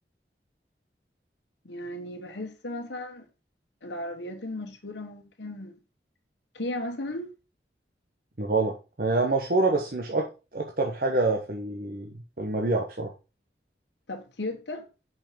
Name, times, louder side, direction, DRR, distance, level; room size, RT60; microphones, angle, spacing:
voice 1, 1.6-3.2 3.8-5.8 6.5-7.3 14.1-14.9, left 1 dB, 85° left, 1.3 m, -35 dB
voice 2, 8.4-13.1, right 2 dB, 55° right, 1.1 m, -27 dB
5.6 x 5.5 x 5.1 m
head